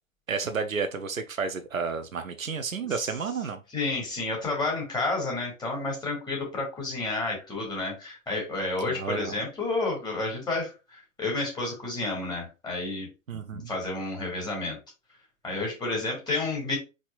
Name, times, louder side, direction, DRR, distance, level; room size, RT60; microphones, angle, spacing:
voice 1, 0.3-3.6 8.9-9.3 13.3-13.7, right 5 dB, 80° right, 0.8 m, -31 dB
voice 2, 3.7-14.8 15.4-16.8, left 2 dB, 10° left, 2.3 m, -30 dB
4.8 x 4.1 x 2.6 m
figure-of-eight pair, 115°, 40 cm